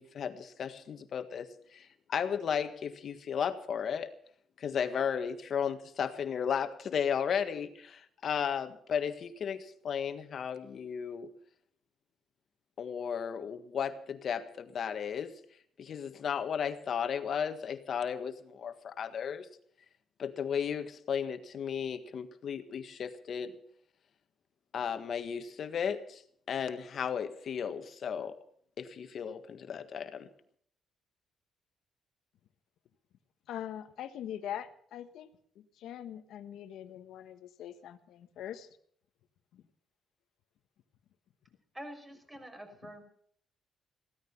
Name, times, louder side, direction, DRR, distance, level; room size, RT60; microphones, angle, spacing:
voice 1, 0.0-4.1 4.6-11.3 12.8-15.3 15.8-19.5 20.2-23.5 24.7-26.2 26.5-28.4 28.8-30.3, left 7 dB, 60° left, 9 dB, 1.6 m, -34 dB
voice 2, 33.5-35.3 35.5-38.7 39.5-39.6 42.8-42.9, left 10 dB, 80° left, 10 dB, 1.3 m, -42 dB
voice 3, 41.7-43.0, equal, 15° right, 4 dB, 5.8 m, -46 dB
16.0 x 13.5 x 5.8 m, 0.62 s
cardioid pair, 90°, 0 cm